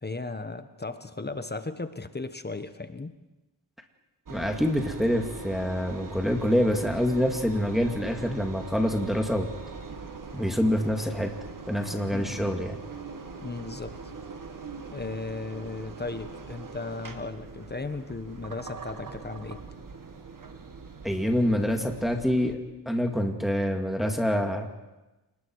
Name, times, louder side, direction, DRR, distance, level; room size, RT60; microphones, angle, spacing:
voice 1, 0.0-3.1 12.1-12.5 13.4-14.1 14.9-19.6, left 3 dB, 25° left, 10 dB, 1.2 m, -36 dB
voice 2, 4.3-9.5 10.3-11.3 11.7-12.8 21.0-22.6 22.9-24.7, equal, ahead, 3 dB, 2.4 m, -26 dB
Engine, 4.3-22.5, right 4 dB, 50° right, 2.1 m, -42 dB
29.5 x 20.5 x 4.8 m, 1.1 s
cardioid pair, 80°, 42 cm